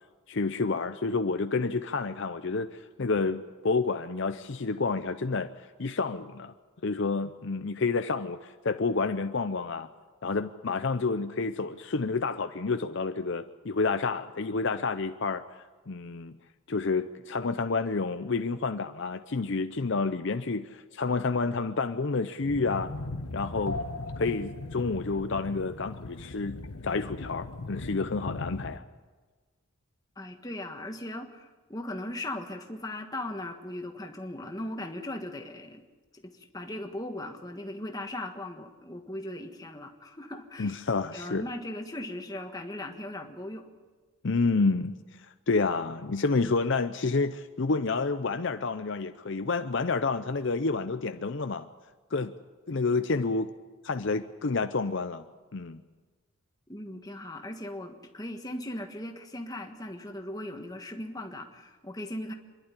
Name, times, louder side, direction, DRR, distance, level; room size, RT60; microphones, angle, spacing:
voice 1, 0.3-6.5 6.8-9.9 10.2-15.4 15.9-16.4 16.7-22.9 23.3-23.8 24.2-26.6 26.8-28.8 40.6-41.4 44.2-44.9 45.5-51.7 52.1-52.3 52.7-53.5 53.8-55.2 55.5-55.8, left 4 dB, 55° left, 9 dB, 0.6 m, -29 dB
sound 1, 22.4-28.8, left 2 dB, 85° left, 1.3 m, -38 dB
voice 2, 30.1-35.8 36.1-40.8 41.1-43.6 56.7-62.3, left 1 dB, 15° left, 4 dB, 1.6 m, -38 dB
27.0 x 11.5 x 9.8 m, 1.4 s
head